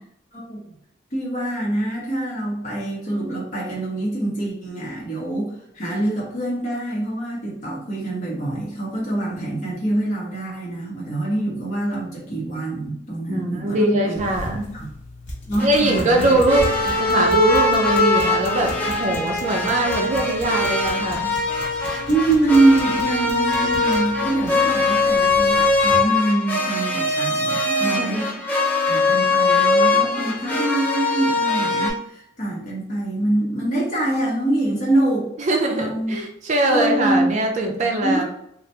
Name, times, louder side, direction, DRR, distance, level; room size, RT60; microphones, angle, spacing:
voice 1, 1.1-14.2 14.7-14.9 15.5-16.4 22.1-28.3 28.9-35.3 35.7-36.2 36.7-37.3 38.0-38.2, right 1 dB, 40° left, -4 dB, 1.1 m, -24 dB
voice 2, 13.3-14.7 15.6-21.3 27.6-28.2 35.4-38.2, right 1 dB, 40° right, 2 dB, 0.4 m, -22 dB
sound 1, 14.1-26.1, left 1 dB, 70° left, 1.1 m, -36 dB
sound 2, 15.6-31.9, left 2 dB, 10° left, 0.6 m, -21 dB
3.3 x 2.4 x 2.7 m, 0.75 s
head